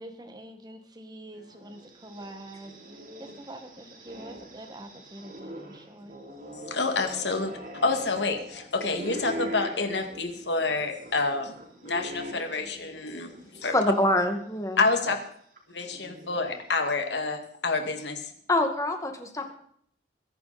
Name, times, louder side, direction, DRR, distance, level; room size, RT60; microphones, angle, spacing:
voice 1, 0.0-2.7 3.2-6.2 15.1-15.2, right 1 dB, 25° right, 7 dB, 1.8 m, -44 dB
sound 1, 1.7-14.0 14.4-14.5 15.6-16.8, right 1 dB, 50° right, 4.2 m, -42 dB
voice 2, 6.7-11.5 11.8-13.3 13.6-13.7 14.8-15.2 15.7-18.3, left 3 dB, 85° left, 5 dB, 2.3 m, -28 dB
voice 3, 13.6-14.8 18.5-19.5, left 1 dB, 20° left, 5 dB, 2.0 m, -25 dB
23.0 x 11.0 x 4.3 m, 0.63 s
head